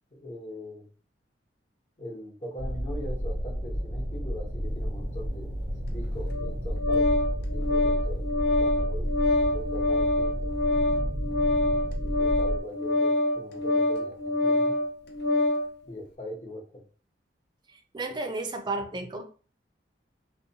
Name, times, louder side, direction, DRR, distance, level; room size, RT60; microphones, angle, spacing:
voice 1, 0.1-0.9 2.0-5.5 5.8-7.2 7.5-10.5 11.6-14.8 15.8-16.8, left 1 dB, 40° left, 0.9 m, -41 dB
sound 1, 2.6-12.6, equal, 85° left, 1.2 m, -31 dB
Organ, 6.3-15.7, left 2 dB, 65° left, 0.5 m, -26 dB
voice 2, 17.7-19.2, right 2 dB, 25° right, 0.4 m, -33 dB
2.4 x 2.2 x 2.8 m
head